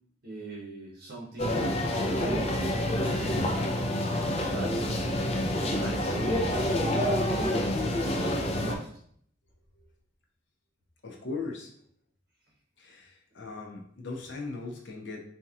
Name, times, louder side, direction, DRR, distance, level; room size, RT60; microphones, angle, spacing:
voice 1, 0.2-1.7 2.1-3.4 4.4-5.1 5.7-8.9, right 2 dB, 55° right, -4 dB, 0.9 m, -40 dB
sound 1, 1.4-8.7, left 1 dB, 30° left, 0.5 m, -28 dB
voice 2, 11.0-11.7 12.8-15.2, left 3 dB, 65° left, 1 dB, 0.7 m, -39 dB
4.4 x 2.8 x 2.4 m, 0.64 s
head